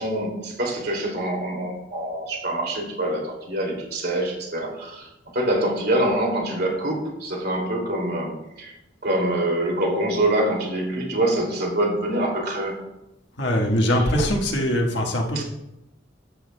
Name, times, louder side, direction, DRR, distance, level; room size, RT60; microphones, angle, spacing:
voice 1, 0.0-8.7 9.0-12.7 15.3-15.4, right 1 dB, 55° right, 0 dB, 2.7 m, -25 dB
voice 2, 13.4-15.4, equal, 60° left, 0 dB, 1.6 m, -22 dB
13.0 x 9.1 x 2.3 m, 0.89 s
head